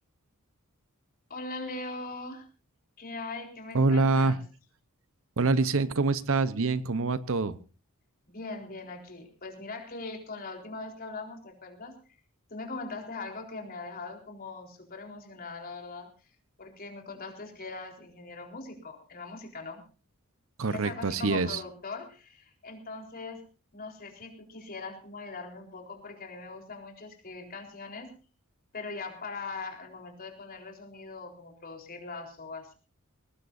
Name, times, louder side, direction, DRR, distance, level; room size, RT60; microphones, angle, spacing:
voice 1, 1.3-2.5 3.0-4.4 8.3-12.0 12.5-16.1 16.6-19.8 20.7-23.4 23.7-28.1 28.7-32.7, left 3 dB, 45° left, 2 dB, 4.1 m, -41 dB
voice 2, 3.7-4.4 5.4-7.6 20.6-21.6, right 3 dB, 65° right, 15 dB, 0.9 m, -25 dB
22.0 x 18.5 x 2.7 m, 0.35 s
head